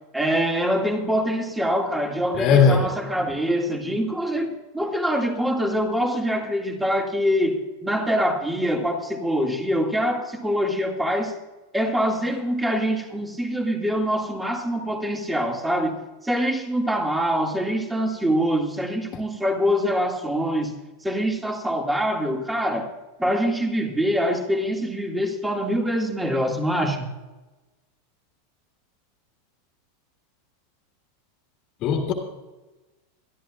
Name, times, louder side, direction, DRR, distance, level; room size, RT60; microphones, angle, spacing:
voice 1, 0.1-11.3 11.7-20.8 21.0-22.9 23.2-27.1, equal, 5° right, 2.1 m, -24 dB
voice 2, 2.4-2.9 31.8-32.1, left 6 dB, 45° left, 1.8 m, -18 dB
22.5 x 13.0 x 2.4 m
hypercardioid pair, 110°, 0 cm